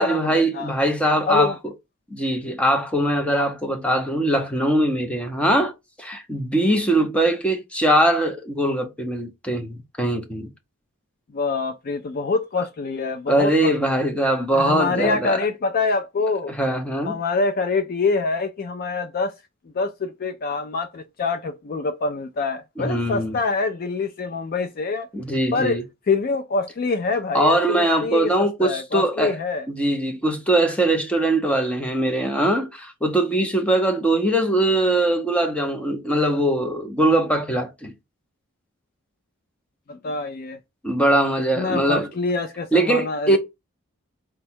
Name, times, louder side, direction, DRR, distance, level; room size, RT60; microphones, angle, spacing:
voice 1, 0.0-1.7 2.1-10.5 13.3-15.5 16.5-17.2 22.8-23.4 25.1-25.8 27.3-29.4 29.7-37.9 40.8-42.1 42.7-43.4, right 1 dB, 5° left, 0.6 m, -21 dB
voice 2, 11.3-14.1 14.5-16.5 17.0-19.3 19.7-25.1 25.5-25.8 26.1-29.7 39.9-40.6 41.6-43.4, left 3 dB, 40° left, 0.3 m, -25 dB
4.5 x 2.1 x 4.3 m
head